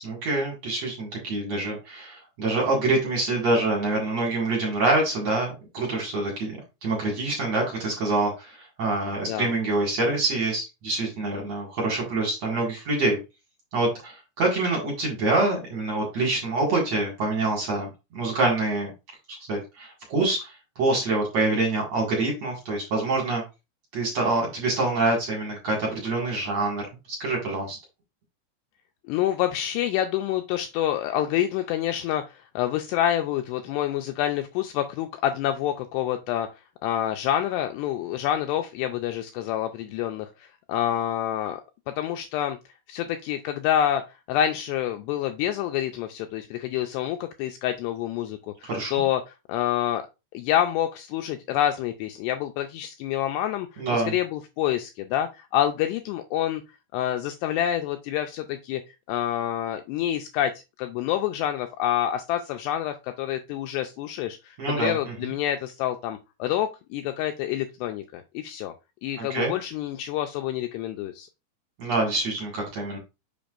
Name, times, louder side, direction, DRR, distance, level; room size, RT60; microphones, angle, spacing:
voice 1, 0.0-13.2 13.7-18.9 19.5-23.4 23.9-26.8 27.1-27.8 48.6-49.0 53.8-54.1 64.6-64.9 69.2-69.5 71.8-73.0, right 2 dB, 50° right, -2 dB, 2.4 m, -26 dB
voice 2, 29.1-36.5 36.8-41.6 42.0-42.6 42.9-44.0 44.3-50.0 50.3-56.6 56.9-58.8 59.1-60.5 60.8-68.7 69.0-71.3, left 11 dB, 85° left, 6 dB, 2.5 m, -27 dB
7.0 x 5.9 x 2.5 m, 0.25 s
omnidirectional pair, 5.3 m